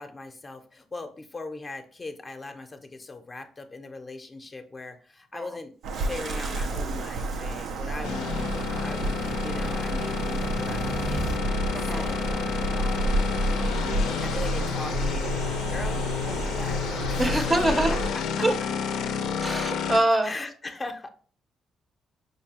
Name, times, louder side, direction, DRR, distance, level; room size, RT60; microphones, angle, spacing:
voice 1, 0.0-13.2 14.2-18.5 19.1-19.2 20.2-21.1, left 3 dB, 25° left, 0.5 m, -40 dB
Bird vocalization bird call bird song, 5.8-18.1, right 2 dB, 85° right, 0.4 m, -31 dB
sound 1, 5.9-11.4, right 3 dB, 55° right, 0.7 m, -38 dB
sound 2, 8.0-20.0, left 7 dB, 90° left, 0.4 m, -30 dB
voice 2, 11.7-12.1 17.2-18.0 18.4-18.5 19.4-20.3, right 1 dB, 20° right, 0.5 m, -24 dB
5.1 x 2.3 x 2.8 m
cardioid pair, 90°, 0 cm